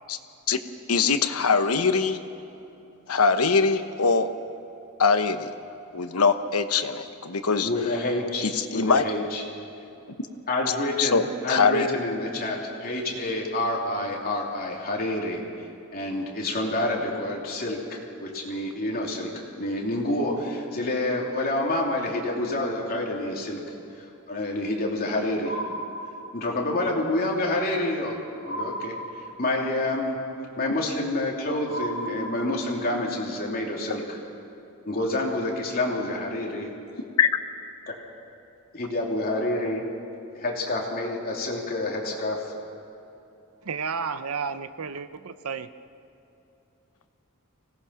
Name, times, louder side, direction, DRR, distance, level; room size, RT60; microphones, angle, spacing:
voice 1, 0.9-2.2 3.1-4.3 5.0-5.5 5.9-7.7 8.4-9.0 11.0-11.9 37.2-37.3, left 5 dB, 80° left, 8 dB, 1.1 m, -22 dB
voice 2, 7.6-8.5 8.7-9.4 10.5-19.3 19.6-23.8 24.3-25.5 26.3-28.2 28.4-30.2 30.6-34.2 34.8-36.7 37.9-38.0 38.7-39.8 40.3-42.5, left 1 dB, 45° left, -1 dB, 3.2 m, -28 dB
sound 1, 25.4-26.7 28.4-29.7 31.7-32.9, right 1 dB, 40° right, 2.5 m, -35 dB
voice 3, 43.6-45.7, right 5 dB, 75° right, 11 dB, 0.8 m, -32 dB
25.0 x 18.0 x 5.8 m, 2.8 s
head